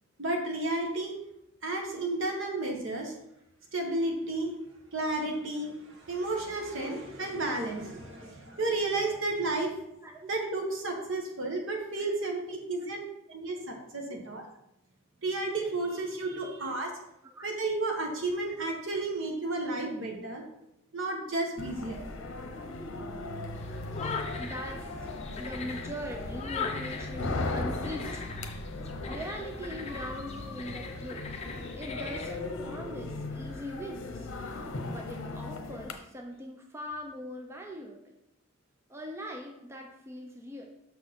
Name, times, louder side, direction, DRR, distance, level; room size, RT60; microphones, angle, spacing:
voice 1, 0.2-1.1 1.6-3.1 3.7-4.5 4.9-9.7 10.3-13.0 13.3-14.4 15.2-16.9 17.4-20.4 20.9-22.0, right 2 dB, 70° right, 2 dB, 1.4 m, -32 dB
voice 2, 7.8-8.3 9.4-9.6 10.0-10.3 11.1-11.2 11.7-12.2 14.1-14.2 16.4-16.5 17.3-17.5 19.0-19.1 21.6-21.8 22.4-22.6 24.4-24.8 25.3-28.2 29.0-31.4 31.8-34.3 34.6-38.2 38.9-40.7, equal, 15° right, 1 dB, 0.6 m, -42 dB
sound 1, 21.6-35.9, left 2 dB, 70° left, 0.8 m, -38 dB
sound 2, 23.5-32.4, left 4 dB, 30° left, 0.7 m, -40 dB
6.2 x 4.6 x 5.3 m, 0.82 s
head